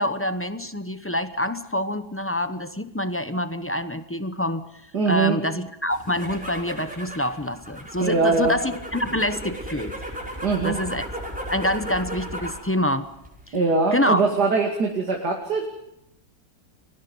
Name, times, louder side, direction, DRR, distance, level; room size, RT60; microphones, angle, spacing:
voice 1, 0.0-4.6 5.1-9.9 10.6-11.1 11.5-13.1 13.5-13.6 13.9-14.3, left 1 dB, 15° left, 10 dB, 0.5 m, -26 dB
voice 2, 4.9-5.4 8.0-8.5 10.4-10.8 13.5-15.6, right 4 dB, 65° right, 1 dB, 2.9 m, -22 dB
sound 1, 5.9-12.7 13.0-13.6, equal, 5° right, 5.8 m, -35 dB
29.5 x 23.0 x 5.4 m, 0.80 s
omnidirectional pair, 1.9 m